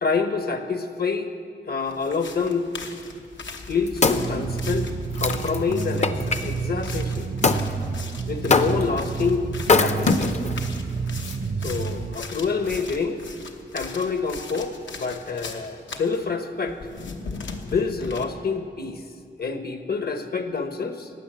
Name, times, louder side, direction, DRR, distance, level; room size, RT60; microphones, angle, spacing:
voice 1, 0.0-1.3 1.7-2.7 3.7-4.9 5.2-7.3 8.3-9.4 9.7-10.6 11.6-13.2 13.7-16.8 17.6-19.0 19.4-21.1, left 5 dB, 55° left, 8 dB, 1.1 m, -27 dB
sound 1, 1.9-16.2 16.7-18.2, left 4 dB, 80° left, 1.2 m, -39 dB
Wood, 3.4-6.4 7.4-7.7 8.5-9.0 9.6-10.6 11.2-11.3, left 3 dB, 35° left, 0.7 m, -22 dB
sound 2, 4.2-12.2, right 5 dB, 50° right, 0.7 m, -29 dB
15.5 x 9.7 x 7.6 m, 2.3 s
wide cardioid pair, 95°, 19 cm